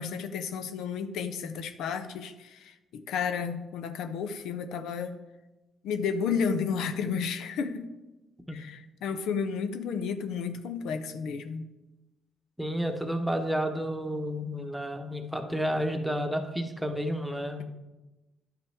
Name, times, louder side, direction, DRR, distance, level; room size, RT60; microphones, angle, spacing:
voice 1, 0.0-5.2 5.8-7.9 8.5-11.7, left 6 dB, 85° left, 9 dB, 0.6 m, -32 dB
voice 2, 12.6-17.6, equal, 5° right, 5 dB, 1.0 m, -31 dB
10.5 x 5.7 x 3.4 m, 1.0 s
cardioid pair, 90°, 0 cm